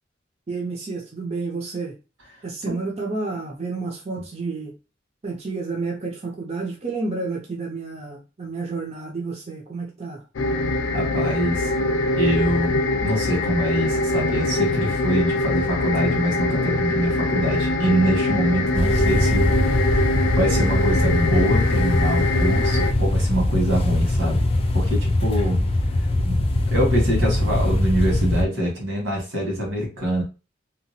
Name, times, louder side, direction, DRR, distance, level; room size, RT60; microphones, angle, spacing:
voice 1, 0.5-2.0 2.4-4.8 5.2-10.2, right 3 dB, 35° right, 0.6 m, -30 dB
sound 1, 10.4-22.9, left 2 dB, 85° left, 0.4 m, -23 dB
voice 2, 10.9-11.7 12.2-20.0 20.3-24.5 24.7-25.6 26.3-26.4 26.7-30.2, equal, 85° right, 1.5 m, -24 dB
sound 2, 18.7-28.4, left 1 dB, 30° left, 0.5 m, -21 dB
2.8 x 2.4 x 2.7 m
head